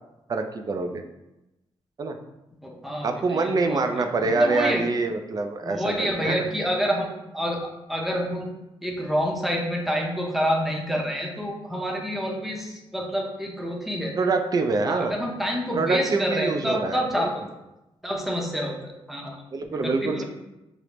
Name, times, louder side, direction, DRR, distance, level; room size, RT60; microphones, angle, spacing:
voice 1, 0.3-1.0 2.0-2.2 3.0-6.5 14.2-15.1 15.7-17.3 19.5-20.2, right 3 dB, 40° right, 6 dB, 0.4 m, -25 dB
voice 2, 2.6-4.8 5.6-8.5 8.8-14.1 14.9-17.3 18.0-19.4 19.7-20.2, equal, ahead, -1 dB, 0.7 m, -28 dB
4.9 x 2.0 x 3.0 m, 0.96 s
cardioid pair, 100°, 10 cm